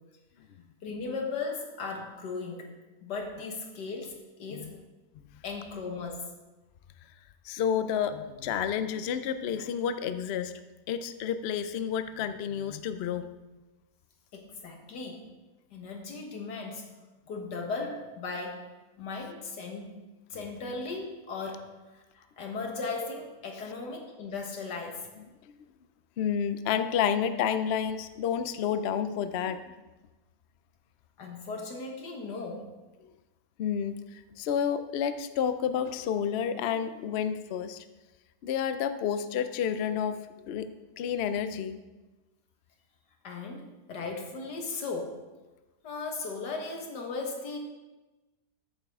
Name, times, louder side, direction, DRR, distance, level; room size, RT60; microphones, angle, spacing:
voice 1, 0.8-2.7 3.0-4.7 5.4-6.3 14.3-15.2 15.7-16.9 17.3-18.7 19.0-19.9 20.3-25.1 31.2-32.6 43.2-45.2 45.8-47.6, left 4 dB, 90° left, 2 dB, 2.0 m, -37 dB
voice 2, 7.4-10.6 10.9-13.3 26.2-29.6 33.6-37.8 38.4-40.7 41.0-41.8, left 8 dB, 70° left, 11 dB, 0.6 m, -30 dB
13.5 x 7.3 x 3.6 m, 1.1 s
omnidirectional pair, 1.7 m